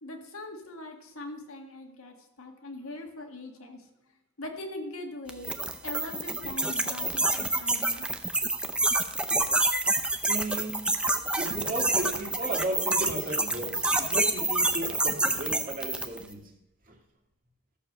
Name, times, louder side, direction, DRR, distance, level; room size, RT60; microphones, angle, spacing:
voice 1, 0.0-3.8 4.4-5.6 5.8-8.1, left 2 dB, 70° left, 3 dB, 1.8 m, -41 dB
sound 1, 5.3-16.2, right 2 dB, 5° right, 0.6 m, -27 dB
voice 2, 10.3-10.9 11.4-16.5 16.9-17.0, right 1 dB, 40° right, 1 dB, 2.1 m, -35 dB
13.5 x 6.8 x 6.7 m, 0.85 s
head